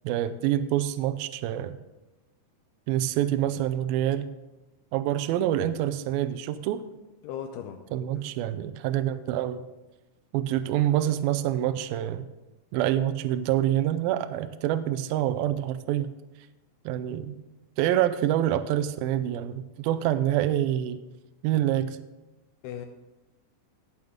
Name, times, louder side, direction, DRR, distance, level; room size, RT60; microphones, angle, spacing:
voice 1, 0.0-1.8 2.9-4.3 4.9-6.8 7.9-9.7 10.3-12.3 12.7-16.1 16.9-17.3 17.8-21.0 21.4-22.0, right 12 dB, 85° right, 9 dB, 2.2 m, -26 dB
voice 2, 7.2-7.8 8.2-8.3 22.6-22.9, left 9 dB, 85° left, 5 dB, 2.7 m, -37 dB
18.0 x 6.5 x 3.6 m, 1.0 s
omnidirectional pair, 4.7 m